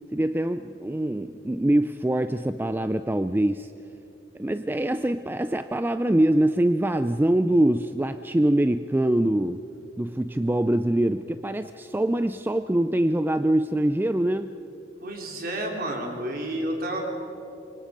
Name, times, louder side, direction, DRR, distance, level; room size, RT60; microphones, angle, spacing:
voice 1, 0.1-3.7 4.4-9.6 10.0-14.5, right 1 dB, 10° right, 10 dB, 0.4 m, -24 dB
voice 2, 15.0-17.0, right 1 dB, 50° right, 1 dB, 3.8 m, -30 dB
26.5 x 24.0 x 5.2 m, 2.9 s
head